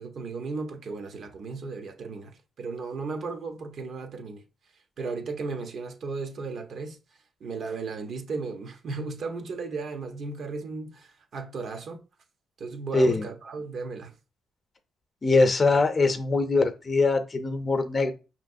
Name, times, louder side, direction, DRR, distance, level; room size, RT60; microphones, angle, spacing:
voice 1, 0.0-4.4 5.0-7.0 7.4-12.0 12.6-14.1, right 4 dB, 60° right, 0.8 m, -35 dB
voice 2, 12.9-13.2 15.2-18.1, left 3 dB, 35° left, 0.7 m, -22 dB
5.3 x 3.0 x 2.6 m
cardioid pair, 90°, 0 cm